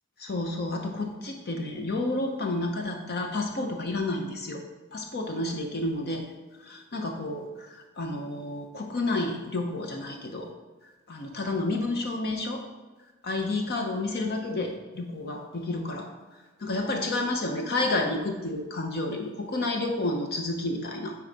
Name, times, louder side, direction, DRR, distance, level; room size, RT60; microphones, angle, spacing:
voice 1, 0.2-4.6 4.9-6.2 6.6-10.5 11.1-12.6 13.2-21.2, left 2 dB, 50° left, 3 dB, 0.7 m, -30 dB
9.4 x 4.6 x 3.9 m, 1.2 s
head